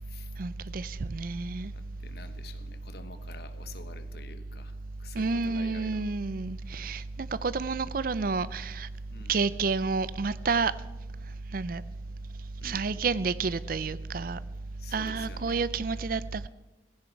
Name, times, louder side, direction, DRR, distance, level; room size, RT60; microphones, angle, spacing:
voice 1, 0.4-1.7 5.2-8.9 9.3-10.7 11.5-11.8 12.6-14.4 14.9-16.5, right 4 dB, 50° right, 0.5 m, -30 dB
voice 2, 1.7-6.1 9.1-9.4 12.6-12.9 14.8-16.0, left 3 dB, 60° left, 1.2 m, -48 dB
16.0 x 14.5 x 4.6 m
head